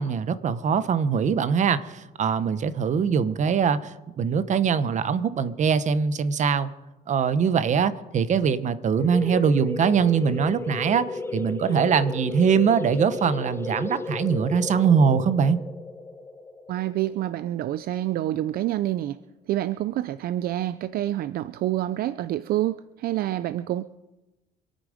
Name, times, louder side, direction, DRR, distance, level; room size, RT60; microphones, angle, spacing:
voice 1, 0.0-6.7 7.1-15.6, right 6 dB, 45° right, 14 dB, 1.0 m, -22 dB
sound 1, 9.0-18.3, left 3 dB, 15° left, 0.8 m, -34 dB
voice 2, 16.7-19.2 19.5-23.8, right 13 dB, 65° right, 15 dB, 0.5 m, -27 dB
25.5 x 9.3 x 5.1 m, 1.0 s
cardioid pair, 110°, 17 cm